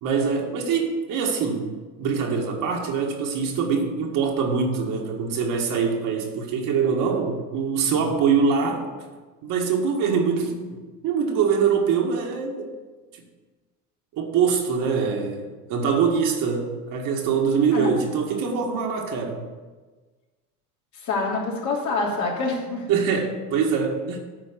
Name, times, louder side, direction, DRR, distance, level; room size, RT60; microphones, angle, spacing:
voice 1, 0.0-1.7 2.0-8.9 9.4-10.8 11.0-12.7 14.1-19.4 22.9-24.2, right 6 dB, 65° right, 1 dB, 1.9 m, -23 dB
voice 2, 20.9-22.8, left 3 dB, 55° left, -3 dB, 3.1 m, -26 dB
8.8 x 5.0 x 7.5 m, 1.3 s
supercardioid pair, 110°, 35 cm